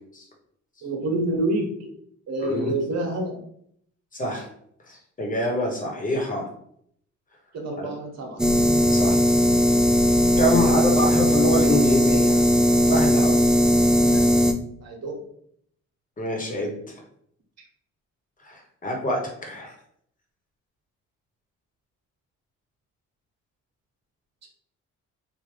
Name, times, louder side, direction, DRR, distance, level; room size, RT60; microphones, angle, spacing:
voice 1, 0.8-1.9 2.3-3.4 7.5-8.4 14.0-15.2 24.4-24.5, right 1 dB, 60° right, 1 dB, 1.2 m, -28 dB
voice 2, 2.4-2.7 4.1-4.5 4.9-6.5 7.8-7.9 8.8-9.2 10.4-12.4 12.8-13.4 16.2-16.7 18.4-19.7, left 1 dB, 25° left, 0 dB, 1.1 m, -26 dB
sound 1, 8.4-14.5, equal, ahead, 0.3 m, -18 dB
3.3 x 2.4 x 3.3 m, 0.67 s
cardioid pair, 90°, 30 cm